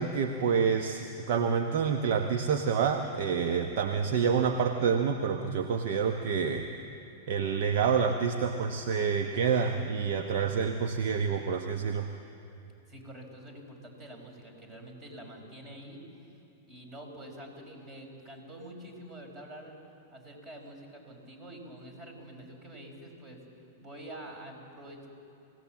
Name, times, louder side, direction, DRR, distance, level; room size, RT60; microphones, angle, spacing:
voice 1, 0.0-6.7 7.3-12.1, right 6 dB, 50° right, 6 dB, 1.0 m, -28 dB
voice 2, 12.9-16.3 16.6-19.8 20.1-23.4 23.8-25.1, right 1 dB, 25° right, 3 dB, 5.2 m, -46 dB
26.0 x 17.0 x 7.4 m, 2.7 s
figure-of-eight pair, 95°, 0 cm